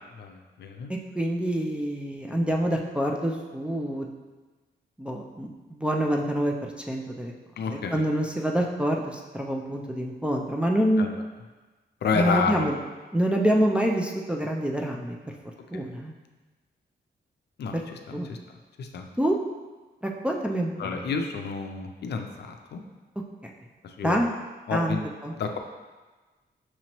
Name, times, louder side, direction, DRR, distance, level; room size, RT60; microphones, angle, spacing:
voice 1, 0.2-0.9 7.6-8.0 11.0-11.1 12.0-12.7 15.7-15.8 17.6-17.7 18.1-18.4 18.8-19.0 20.8-22.8 23.8-24.2 24.7-25.0 25.4-25.6, left 5 dB, 65° left, 4 dB, 0.4 m, -30 dB
voice 2, 1.1-4.1 5.0-7.3 7.7-11.1 12.1-12.7 13.1-15.3 15.7-16.1 17.7-17.8 18.1-18.3 19.2-19.4 20.0-20.9 23.4-23.5 24.0-24.3 24.7-25.0 25.2-25.3, right 1 dB, 5° right, 0 dB, 0.3 m, -26 dB
6.1 x 2.9 x 2.9 m, 1.3 s
wide cardioid pair, 135°, 19 cm